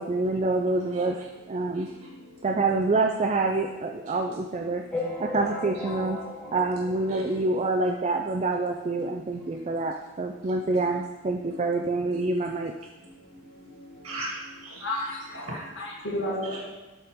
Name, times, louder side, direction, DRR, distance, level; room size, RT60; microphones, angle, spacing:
voice 1, 0.0-1.2 1.5-1.9 2.4-4.8 5.2-6.2 6.5-12.7, right 3 dB, 30° right, 2 dB, 0.4 m, -26 dB
voice 2, 0.8-2.7 4.0-4.3 4.8-5.0 5.3-5.5 5.8-5.9 6.4-6.8 7.1-7.6 9.0-9.1 9.4-9.7 10.5-11.8 12.1-12.2 13.0-15.7 16.4-16.6, right 1 dB, 80° right, -3 dB, 1.8 m, -43 dB
sound 1, 4.9-7.8 8.3-8.4 8.5-8.7 9.0-9.1 9.9-10.0 10.5-10.6, left 2 dB, 5° left, 1.0 m, -36 dB
voice 3, 14.8-15.4 15.8-16.6, left 1 dB, 55° left, -1 dB, 1.6 m, -31 dB
12.0 x 4.2 x 3.6 m, 1.2 s
head